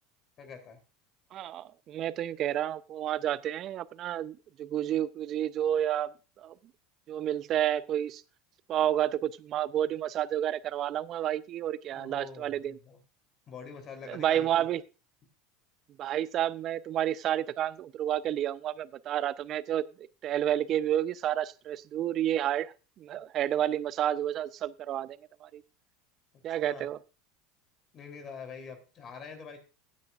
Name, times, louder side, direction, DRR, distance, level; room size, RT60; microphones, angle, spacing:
voice 1, 0.4-0.8 11.9-13.0 13.5-14.7 26.6-26.9 27.9-29.6, left 5 dB, 40° left, 3.2 m, -45 dB
voice 2, 1.3-6.1 6.4-6.5 7.1-8.2 8.7-12.8 14.1-14.8 16.0-25.6 26.4-27.0, right 11 dB, 45° right, 0.6 m, -30 dB
16.0 x 9.5 x 2.4 m
hypercardioid pair, 85°, 0 cm